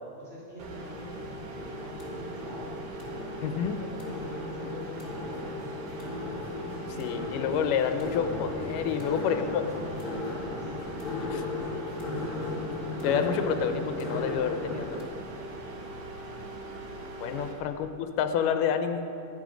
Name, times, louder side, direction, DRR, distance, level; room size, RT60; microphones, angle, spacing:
voice 1, 0.2-2.8 3.1-6.1 9.0-11.8 15.6-15.9, left 1 dB, 20° right, -9 dB, 2.9 m, -46 dB
sound 1, 0.6-17.5, right 2 dB, 75° right, 2.8 m, -41 dB
sound 2, 1.6-15.0, left 3 dB, 35° left, 1.5 m, -36 dB
voice 2, 3.4-3.8 6.9-9.6 11.3-11.4 12.9-15.1 17.2-17.9 18.2-19.0, left 7 dB, 85° left, 8 dB, 2.3 m, -28 dB
sound 3, 4.8-12.5, right 1 dB, 60° right, 4.9 m, -50 dB
12.5 x 12.0 x 5.1 m, 2.9 s
omnidirectional pair, 3.8 m